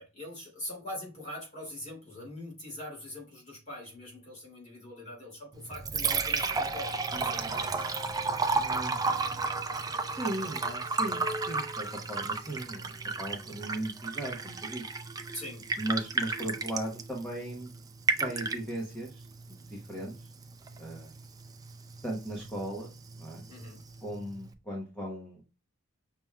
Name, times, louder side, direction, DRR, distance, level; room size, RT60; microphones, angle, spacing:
voice 1, 0.0-7.9 15.3-15.7 23.5-23.8, left 1 dB, 30° left, 2.6 m, -43 dB
Liquid, 5.5-24.5, right 4 dB, 15° right, 0.4 m, -34 dB
voice 2, 7.1-7.5 8.5-9.0 10.0-15.0 15.8-17.7 18.2-19.2 19.5-20.2 20.8-21.1 22.0-22.9 23.2-23.5 24.0-25.4, right 1 dB, 10° left, 0.9 m, -37 dB
5.9 x 3.5 x 2.3 m
head